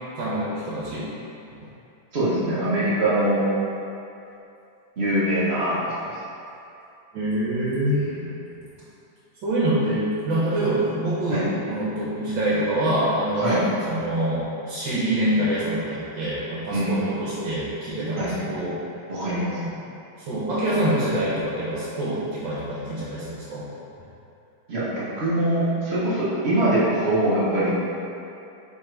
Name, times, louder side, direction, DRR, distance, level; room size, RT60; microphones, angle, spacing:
voice 1, 0.2-1.1 7.1-8.0 9.4-18.7 20.2-23.7, right 1 dB, 75° right, -9 dB, 1.5 m, -25 dB
voice 2, 2.1-3.5 5.0-5.9 7.9-8.3 11.3-11.4 13.4-13.6 16.7-17.0 18.2-18.3 19.1-19.5 24.7-27.7, right 1 dB, 45° right, -9 dB, 1.0 m, -23 dB
3.6 x 3.4 x 4.3 m, 2.7 s
omnidirectional pair, 2.1 m